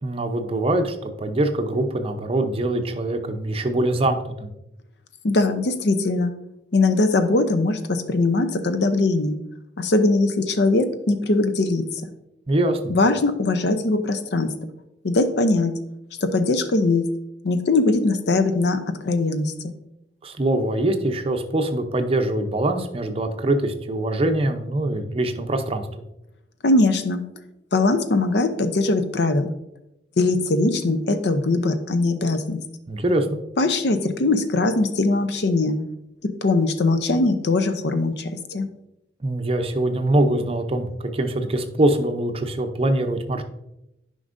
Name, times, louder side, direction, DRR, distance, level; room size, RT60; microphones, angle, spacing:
voice 1, 0.0-4.5 12.5-12.8 20.2-25.9 32.9-33.4 39.2-43.4, right 1 dB, 30° right, 6 dB, 0.6 m, -23 dB
voice 2, 5.2-6.3 6.7-9.4 9.8-12.1 12.9-14.5 15.0-15.8 16.2-17.1 17.4-19.7 26.6-27.2 27.7-29.5 30.2-32.6 33.6-35.8 36.2-38.7, left 2 dB, 65° left, 10 dB, 0.6 m, -21 dB
9.6 x 5.2 x 2.6 m, 0.88 s
head